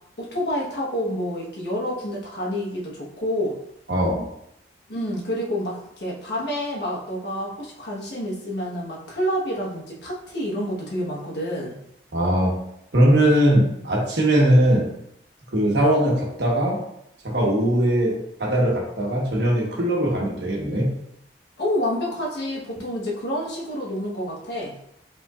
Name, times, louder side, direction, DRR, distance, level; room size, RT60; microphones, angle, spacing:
voice 1, 0.2-3.6 4.9-11.8 21.6-24.8, equal, 70° left, -3 dB, 1.2 m, -28 dB
voice 2, 3.9-4.2 12.1-12.5 12.9-14.9 15.5-16.8 17.2-20.9, right 1 dB, 75° right, -2 dB, 1.2 m, -20 dB
5.5 x 3.6 x 2.4 m, 0.76 s
head